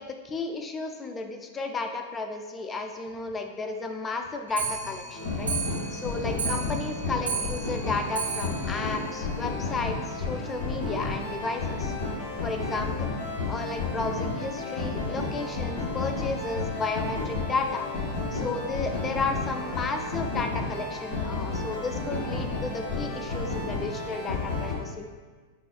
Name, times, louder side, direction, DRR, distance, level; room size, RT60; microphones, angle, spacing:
voice 1, 0.0-5.5 5.9-11.9 12.4-13.1 13.5-17.9 18.3-25.1, left 3 dB, 20° left, 5 dB, 0.4 m, -33 dB
Clock, 4.5-10.0 10.3-10.4 10.7-10.8 11.1-11.2 11.5-11.6 12.3-12.4 13.1-13.2 13.8-13.9, right 6 dB, 85° right, 0.7 m, -35 dB
sound 1, 5.1-24.7, left 3 dB, 65° left, 1.2 m, -32 dB
5.5 x 2.3 x 2.3 m, 1.5 s
hypercardioid pair, 95°, 0 cm